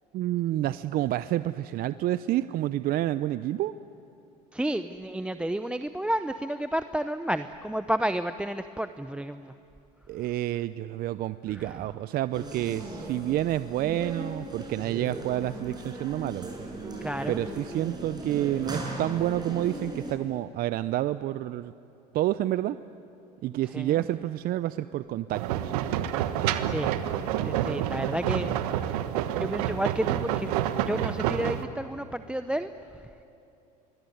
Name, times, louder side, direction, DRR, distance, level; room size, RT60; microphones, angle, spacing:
voice 1, 0.1-3.7 10.1-16.6 17.3-21.7 22.1-22.8 23.4-25.7, right 14 dB, 50° right, 14 dB, 0.6 m, -29 dB
voice 2, 4.5-9.5 11.5-11.8 17.0-17.4 23.7-23.9 26.6-27.0 27.4-28.5 29.4-32.7, right 1 dB, 5° right, 11 dB, 0.7 m, -31 dB
sound 1, 12.3-20.1, right 2 dB, 20° right, 6.9 m, -37 dB
sound 2, 25.3-31.7, right 11 dB, 80° right, 1.3 m, -28 dB
26.0 x 21.5 x 9.4 m, 2.7 s
supercardioid pair, 85°, 19 cm